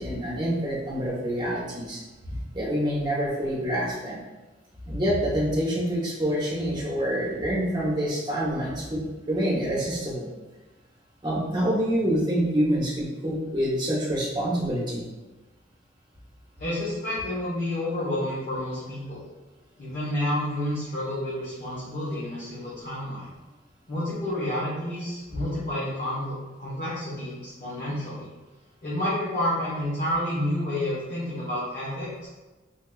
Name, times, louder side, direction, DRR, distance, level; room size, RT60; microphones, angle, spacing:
voice 1, 0.0-2.0 2.3-4.2 4.9-10.3 11.2-15.0, equal, 25° right, -5 dB, 0.9 m, -26 dB
voice 2, 16.6-19.2 19.8-23.3 23.9-28.3 28.8-32.3, left 1 dB, 50° left, -10 dB, 1.0 m, -30 dB
4.8 x 2.6 x 2.3 m, 1.2 s
head